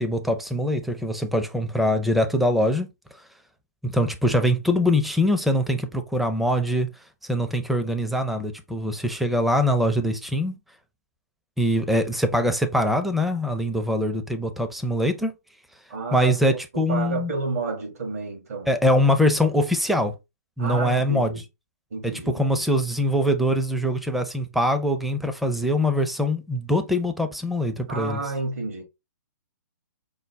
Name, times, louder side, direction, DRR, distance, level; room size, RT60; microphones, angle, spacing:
voice 1, 0.0-2.9 3.8-6.9 7.3-10.6 11.6-15.3 16.1-17.3 18.7-20.1 20.6-21.4 22.0-28.2, left 1 dB, ahead, 0.5 m, -23 dB
voice 2, 15.9-16.4 16.7-18.7 20.6-21.4 21.9-22.6 27.9-28.8, right 4 dB, 65° right, 1.9 m, -30 dB
5.2 x 2.1 x 3.3 m
figure-of-eight pair, 130°, 9 cm